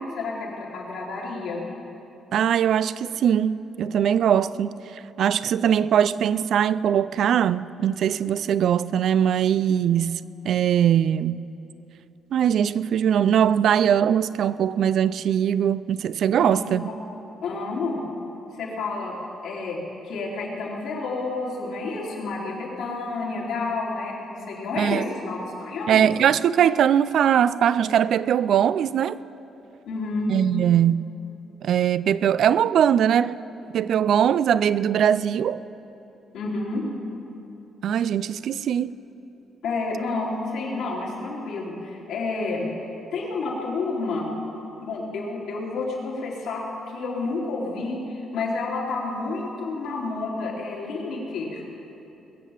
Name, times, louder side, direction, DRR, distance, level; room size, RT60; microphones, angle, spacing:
voice 1, 0.0-1.6 16.4-16.9 17.4-18.0 18.6-19.1 19.4-19.8 20.0-26.1 29.9-30.3 36.3-36.9 39.6-42.7 43.1-44.3 44.8-51.6, left 3 dB, 85° left, 3.5 m, -30 dB
voice 2, 2.3-4.7 5.2-11.4 12.3-16.9 24.8-25.0 25.9-29.2 30.3-31.1 31.6-33.3 33.7-35.6 37.8-38.9, right 9 dB, 70° right, 0.4 m, -21 dB
21.5 x 7.4 x 7.3 m
cardioid pair, 90°, 0 cm